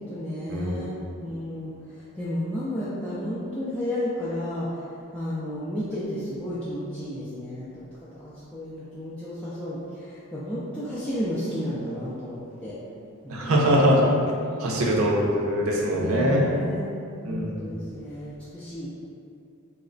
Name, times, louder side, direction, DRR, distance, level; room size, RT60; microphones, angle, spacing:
voice 1, 0.1-0.9 1.2-4.7 5.1-7.7 8.1-12.8 13.2-13.6 14.4-15.0 15.9-16.9 17.2-18.9, left 1 dB, 5° left, -11 dB, 0.3 m, -32 dB
voice 2, 13.3-14.0 14.6-16.5 17.3-17.5, equal, 65° right, -2 dB, 0.6 m, -22 dB
3.1 x 2.1 x 3.7 m, 2.5 s
head